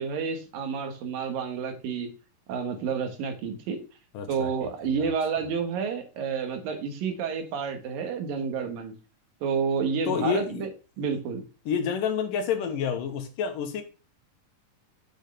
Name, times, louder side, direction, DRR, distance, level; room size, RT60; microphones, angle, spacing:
voice 1, 0.0-2.1 2.5-3.8 4.3-8.9 9.4-10.7 11.0-11.4, right 6 dB, 90° right, 6 dB, 3.3 m, -30 dB
voice 2, 4.1-5.1 10.1-10.7 11.7-13.8, left 7 dB, 80° left, 7 dB, 2.8 m, -29 dB
8.1 x 6.4 x 3.3 m, 0.33 s
omnidirectional pair, 3.8 m